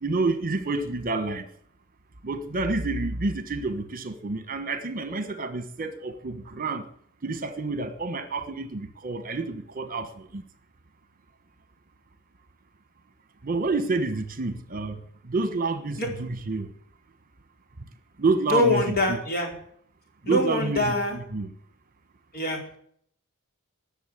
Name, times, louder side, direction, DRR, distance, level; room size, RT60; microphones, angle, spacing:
voice 1, 0.0-1.5 2.2-6.8 7.2-10.4 13.4-15.0 15.2-16.7 18.2-19.2 20.2-21.5, right 3 dB, 40° right, 1.3 m, -28 dB
voice 2, 18.5-19.5 20.3-21.2 22.3-22.6, left 1 dB, 45° left, 4.5 m, -24 dB
19.5 x 7.3 x 9.9 m
head